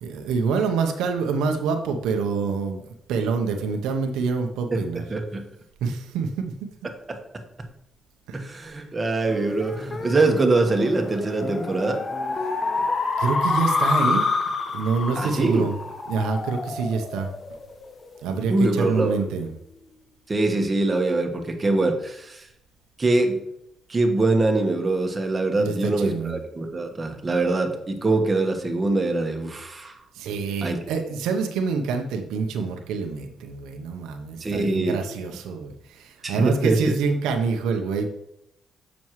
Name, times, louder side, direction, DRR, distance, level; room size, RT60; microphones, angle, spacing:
voice 1, 0.0-2.8 3.1-5.0 5.8-6.5 8.3-8.4 12.4-12.6 13.2-14.3 14.7-15.8 16.1-17.3 18.2-19.5 25.6-26.4 30.1-38.1, right 5 dB, 85° right, 4 dB, 0.8 m, -26 dB
voice 2, 5.1-5.4 6.8-7.2 8.3-12.0 15.1-15.7 18.5-19.2 20.3-22.5 23.0-23.4 23.9-30.0 30.6-30.8 34.4-35.0 36.2-36.9, right 2 dB, 30° right, 4 dB, 1.3 m, -23 dB
sound 1, 9.3-18.1, left 3 dB, 40° left, 0.9 m, -28 dB
7.2 x 6.1 x 3.1 m, 0.81 s
cardioid pair, 75°, 0 cm